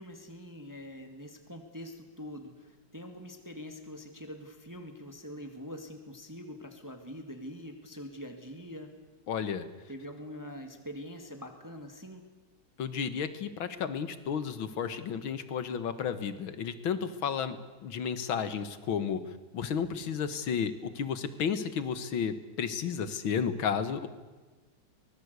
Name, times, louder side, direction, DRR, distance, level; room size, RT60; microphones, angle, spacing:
voice 1, 0.0-8.9 9.9-12.2, equal, 10° right, 5 dB, 1.9 m, -44 dB
voice 2, 9.3-9.7 12.8-17.6 17.8-19.2 19.5-24.1, left 7 dB, 75° left, 12 dB, 2.2 m, -32 dB
24.0 x 20.0 x 8.2 m, 1.3 s
omnidirectional pair, 2.3 m